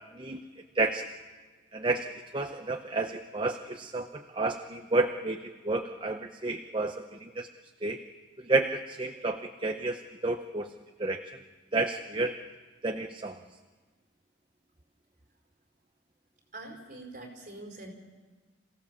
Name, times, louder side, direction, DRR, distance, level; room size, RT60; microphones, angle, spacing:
voice 1, 1.7-7.5 7.8-8.0 8.4-10.7 11.0-11.2 11.7-12.3 12.8-13.4, right 3 dB, 25° right, 5 dB, 0.7 m, -31 dB
voice 2, 16.5-17.9, right 2 dB, 45° right, 1 dB, 4.9 m, -44 dB
27.5 x 16.0 x 7.1 m, 1.4 s
head